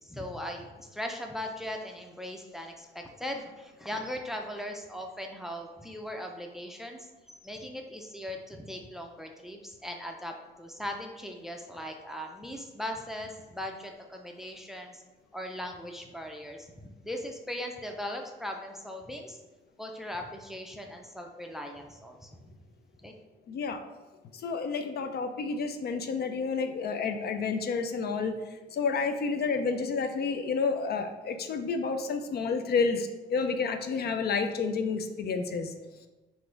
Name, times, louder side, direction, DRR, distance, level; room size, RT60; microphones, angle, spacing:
voice 1, 0.0-7.1 7.4-15.0 15.3-19.4 19.8-22.6 23.0-23.1, left 1 dB, ahead, 3 dB, 0.5 m, -39 dB
voice 2, 23.5-23.8 24.4-28.3 28.7-35.7, left 4 dB, 55° left, 6 dB, 0.4 m, -30 dB
4.0 x 2.6 x 4.4 m, 1.2 s
cardioid pair, 90°, 20 cm